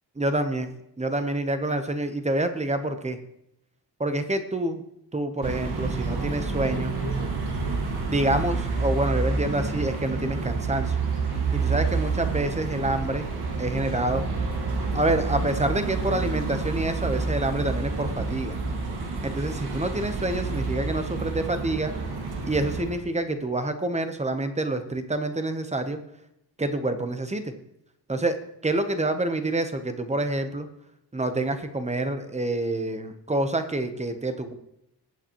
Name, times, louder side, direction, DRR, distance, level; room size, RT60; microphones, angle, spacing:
voice 1, 0.2-0.7 1.0-3.2 4.0-4.8 5.1-6.9 8.1-10.9 11.5-13.3 13.6-14.3 14.9-18.6 19.2-21.9 22.5-26.0 26.6-27.4 28.1-28.4 28.6-30.7 31.1-34.5, right 2 dB, 15° right, 8 dB, 0.8 m, -27 dB
sound 1, 5.4-23.0, right 4 dB, 65° right, 1.9 m, -29 dB
20.0 x 8.8 x 3.0 m, 0.82 s
wide cardioid pair, 180°, 41 cm